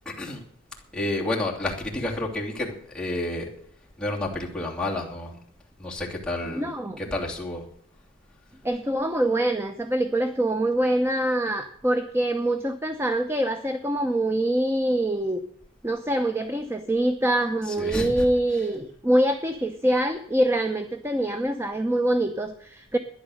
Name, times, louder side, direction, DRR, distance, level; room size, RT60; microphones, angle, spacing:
voice 1, 0.0-0.4 0.9-3.5 4.0-5.4 5.8-6.7 7.0-7.6 17.6-18.3 18.6-18.7, left 2 dB, 5° left, -4 dB, 2.9 m, -30 dB
voice 2, 6.5-7.0 8.6-15.4 15.8-23.0, right 1 dB, 15° right, 7 dB, 0.8 m, -24 dB
12.5 x 10.5 x 6.6 m, 0.66 s
head